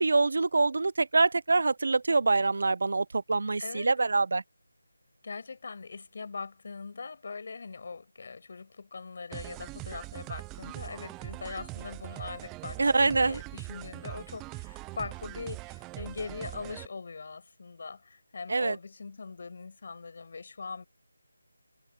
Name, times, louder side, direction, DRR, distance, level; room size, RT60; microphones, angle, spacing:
voice 1, 0.0-4.4 12.8-13.4 18.5-18.8, right 3 dB, 55° right, 0.6 m, -25 dB
voice 2, 3.6-3.9 5.2-20.8, left 4 dB, 45° left, 6.5 m, -41 dB
sound 1, 9.3-16.9, right 23 dB, 10° right, 0.4 m, -42 dB
figure-of-eight pair, 170°, 0 cm